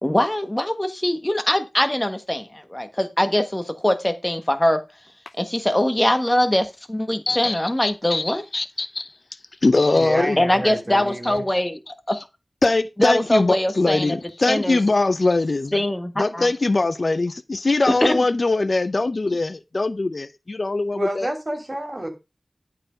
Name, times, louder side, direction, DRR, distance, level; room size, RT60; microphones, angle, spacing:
voice 1, 0.0-4.8 5.4-8.4 10.4-11.8 12.1-12.2 13.0-14.0 14.5-14.8 15.7-16.4 18.0-18.2, left 1 dB, 20° left, 1.3 m, -22 dB
voice 2, 7.3-10.4 11.2-11.6 12.1-12.2 12.6-15.8 16.2-21.3, left 3 dB, 60° left, 0.7 m, -22 dB
voice 3, 9.9-11.4 21.0-22.1, right 1 dB, 35° right, 3.0 m, -29 dB
10.5 x 4.7 x 5.1 m
wide cardioid pair, 50°, 0 cm